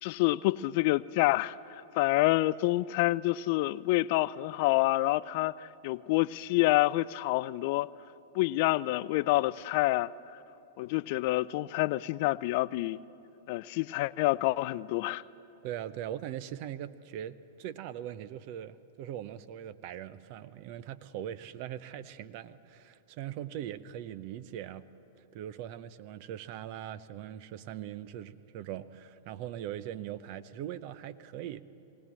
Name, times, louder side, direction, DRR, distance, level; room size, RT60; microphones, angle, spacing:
voice 1, 0.0-7.9 8.3-10.1 10.8-13.0 13.5-15.2, left 18 dB, 55° left, 19 dB, 0.4 m, -28 dB
voice 2, 15.6-24.8 25.3-31.6, right 11 dB, 50° right, 15 dB, 0.7 m, -41 dB
20.5 x 18.0 x 7.5 m, 3.0 s
hypercardioid pair, 110°, 0 cm